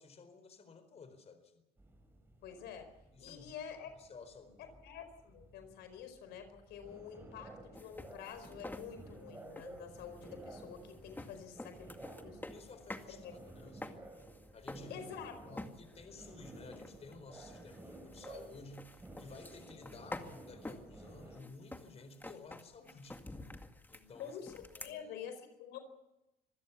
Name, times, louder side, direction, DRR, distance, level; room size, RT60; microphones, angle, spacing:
voice 1, 0.0-1.6 3.1-3.6 4.0-4.8 11.2-11.4 11.8-11.9 12.5-14.0 14.5-15.1 15.4-23.2 23.9-24.4 24.8-25.2, left 4 dB, 40° left, 9 dB, 4.3 m, -54 dB
sound 1, 1.8-21.4, right 2 dB, 15° right, 5.0 m, -54 dB
voice 2, 2.4-2.9 3.2-3.9 4.6-11.9 12.2-12.4 13.1-13.3 14.9-15.6 24.2-25.8, left 8 dB, 80° left, 8 dB, 4.7 m, -48 dB
sound 2, 7.7-13.1 13.4-15.3 15.6-16.0 16.4-24.9, left 2 dB, 10° left, 2.1 m, -49 dB
26.0 x 16.5 x 7.1 m, 0.94 s
cardioid pair, 110°, 17 cm